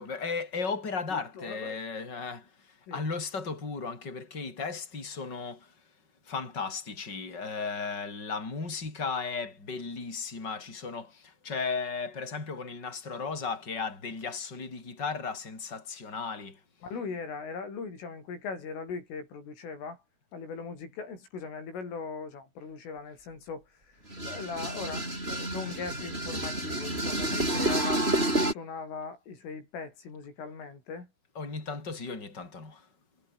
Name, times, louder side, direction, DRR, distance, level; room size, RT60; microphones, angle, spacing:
voice 1, 0.0-5.7 6.3-16.6 31.3-32.9, left 4 dB, 20° left, 6.5 m, -35 dB
voice 2, 1.1-1.8 2.9-3.1 16.8-20.0 20.3-23.7 24.2-28.1 28.3-31.1, left 5 dB, 90° left, 10.5 m, -39 dB
sound 1, 24.1-28.5, right 1 dB, 10° right, 7.8 m, -29 dB
omnidirectional pair, 5.6 m